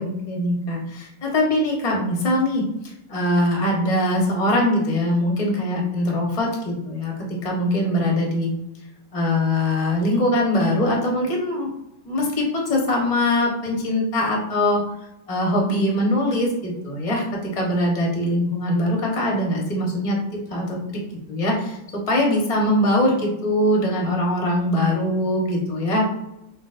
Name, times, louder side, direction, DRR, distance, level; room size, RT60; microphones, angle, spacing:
voice 1, 0.0-8.5 9.1-11.7 12.1-14.8 15.3-21.0 21.3-26.0, left 1 dB, 25° left, -1 dB, 0.9 m, -22 dB
6.3 x 2.8 x 2.5 m, 0.86 s
omnidirectional pair, 2.1 m